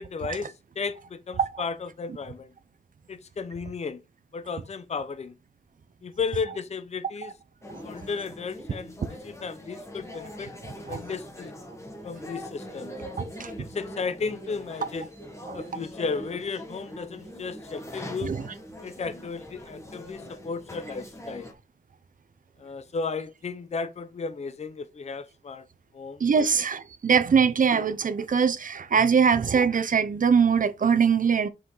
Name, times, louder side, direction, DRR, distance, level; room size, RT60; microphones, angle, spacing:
voice 1, 0.0-2.5 3.1-4.0 4.3-5.3 6.0-7.3 7.8-10.5 10.8-11.5 12.0-13.0 13.6-15.1 15.5-18.3 18.8-21.5 22.6-25.6 25.9-26.6, left 4 dB, 40° left, 0.7 m, -34 dB
sound 1, 7.6-21.5, equal, 15° left, 1.6 m, -42 dB
voice 2, 13.2-13.5 15.4-15.6 18.2-18.4 26.2-31.5, right 6 dB, 50° right, 0.8 m, -22 dB
5.9 x 4.8 x 3.9 m
wide cardioid pair, 135°, 17 cm